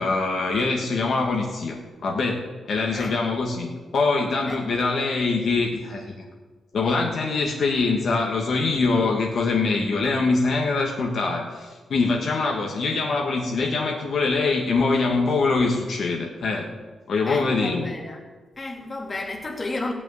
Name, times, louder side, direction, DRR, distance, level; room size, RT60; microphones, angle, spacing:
voice 1, 0.0-2.4 2.7-6.1 6.7-16.7 17.1-17.8, left 3 dB, 50° left, 0 dB, 1.6 m, -23 dB
voice 2, 17.3-18.2 18.6-19.9, left 2 dB, 25° left, 0 dB, 2.2 m, -32 dB
16.5 x 6.1 x 9.5 m, 1.4 s
wide cardioid pair, 165°, 0 cm